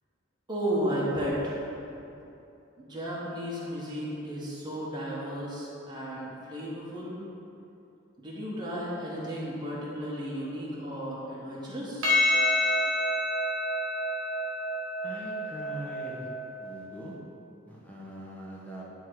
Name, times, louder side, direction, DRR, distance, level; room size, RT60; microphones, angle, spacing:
voice 1, 0.5-1.6 2.8-7.2 8.2-12.1, equal, 20° right, -7 dB, 1.1 m, -33 dB
Percussion, 12.0-16.7, left 1 dB, 85° right, 1.3 m, -28 dB
voice 2, 15.0-16.3 16.6-17.1 17.7-18.8, equal, 10° left, -5 dB, 1.2 m, -42 dB
9.5 x 3.7 x 4.7 m, 2.8 s
head